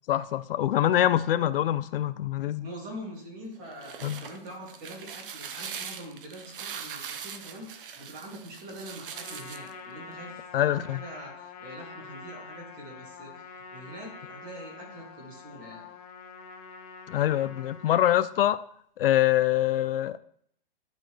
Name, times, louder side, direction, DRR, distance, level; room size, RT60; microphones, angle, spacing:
voice 1, 0.1-2.7 4.0-4.2 10.5-11.0 17.1-18.6 19.0-20.2, left 12 dB, 70° left, 14 dB, 0.5 m, -24 dB
voice 2, 2.6-15.9, equal, 25° right, -2 dB, 2.5 m, -44 dB
sound 1, 3.6-9.7, right 7 dB, 65° right, 0.9 m, -41 dB
Trumpet, 9.1-18.1, left 5 dB, 40° left, 1.1 m, -46 dB
11.5 x 4.3 x 3.2 m, 0.65 s
hypercardioid pair, 155°, 30 cm